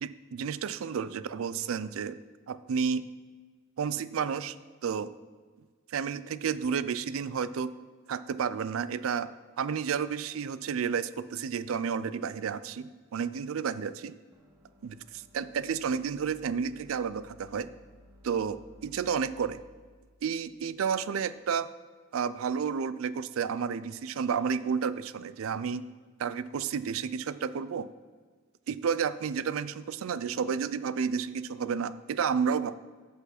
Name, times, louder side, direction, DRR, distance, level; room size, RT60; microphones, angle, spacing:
voice 1, 0.0-2.2 2.5-3.1 3.8-4.6 4.8-5.1 5.9-7.7 8.1-9.3 9.6-14.2 14.8-17.7 18.2-19.6 20.2-21.7 22.1-25.9 26.2-27.9 28.7-32.8, right 6 dB, 75° right, 15 dB, 0.4 m, -31 dB
sound 1, 14.3-21.4, left 1 dB, 15° right, 1.2 m, -58 dB
8.3 x 5.7 x 5.8 m, 1.5 s
head